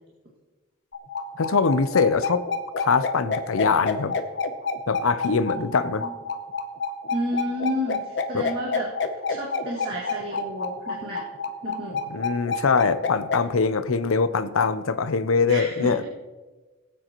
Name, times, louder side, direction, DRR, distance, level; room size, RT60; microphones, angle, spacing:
sound 1, 0.9-13.4, left 4 dB, 55° left, 0.8 m, -28 dB
voice 1, 1.4-2.5 2.8-4.2 4.9-6.0 8.3-8.5 12.1-16.0, left 5 dB, 80° left, 13 dB, 0.6 m, -23 dB
voice 2, 7.1-8.9 9.3-11.2 11.6-12.0 15.5-16.0, equal, 50° right, -6 dB, 2.1 m, -31 dB
18.5 x 9.2 x 3.0 m, 1.3 s
head